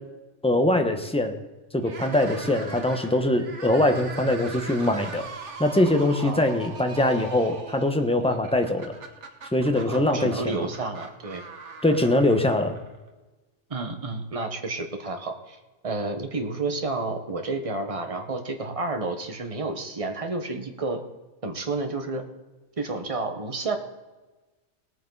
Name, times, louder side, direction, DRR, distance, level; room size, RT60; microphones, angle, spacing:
voice 1, 0.4-1.4 1.7-5.3 5.6-8.9 9.5-10.7 11.8-12.8, left 1 dB, 5° left, 5 dB, 1.1 m, -22 dB
sound 1, 1.8-13.1, right 3 dB, 85° right, 1.7 m, -41 dB
voice 2, 9.8-11.4 13.7-15.6 15.8-21.0 21.4-22.2 22.8-23.8, right 3 dB, 30° right, 5 dB, 1.3 m, -30 dB
19.0 x 9.3 x 4.0 m, 1.2 s
omnidirectional pair, 1.2 m